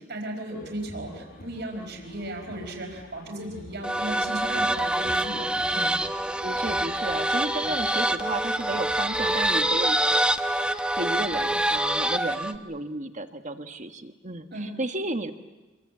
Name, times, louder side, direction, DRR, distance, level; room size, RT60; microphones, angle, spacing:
voice 1, 0.0-5.9 14.5-14.7, right 1 dB, 60° right, 3 dB, 4.6 m, -36 dB
sound 1, 0.5-9.4, left 1 dB, 50° left, 1.7 m, -48 dB
sound 2, 3.8-12.6, right 1 dB, 5° right, 0.8 m, -25 dB
voice 2, 6.4-15.3, right 2 dB, 40° right, 7 dB, 1.4 m, -33 dB
27.0 x 23.0 x 8.6 m, 1.1 s
head